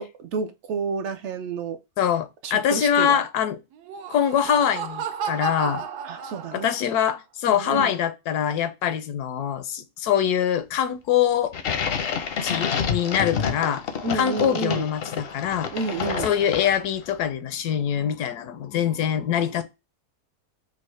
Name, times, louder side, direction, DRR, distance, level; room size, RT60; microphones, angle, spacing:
voice 1, 0.0-1.8 2.4-3.2 6.0-6.7 7.5-7.9 14.0-14.9 15.7-16.3, right 4 dB, 65° right, 0.7 m, -30 dB
voice 2, 2.0-3.6 4.1-5.8 6.5-11.5 12.4-13.9 14.1-15.7 16.2-19.6, left 9 dB, 85° left, 1.2 m, -24 dB
Laughter, 3.7-6.9, right 6 dB, 90° right, 1.2 m, -33 dB
sound 1, 11.5-17.0, left 6 dB, 60° left, 0.6 m, -28 dB
5.2 x 2.1 x 3.2 m
omnidirectional pair, 1.6 m